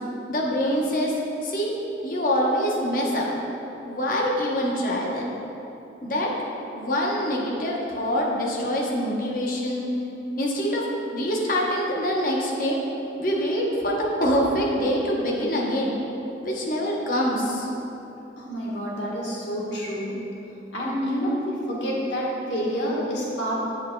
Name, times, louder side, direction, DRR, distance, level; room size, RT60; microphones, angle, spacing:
voice 1, 0.3-1.7 2.0-3.3 3.8-5.3 6.0-6.3 6.7-9.9 10.4-10.9 11.1-12.8 13.2-15.9 16.4-17.7, equal, 50° left, -2 dB, 0.9 m, -25 dB
voice 2, 18.4-20.1 20.7-23.5, equal, 90° left, -5 dB, 1.5 m, -28 dB
7.7 x 7.3 x 2.3 m, 3.0 s
head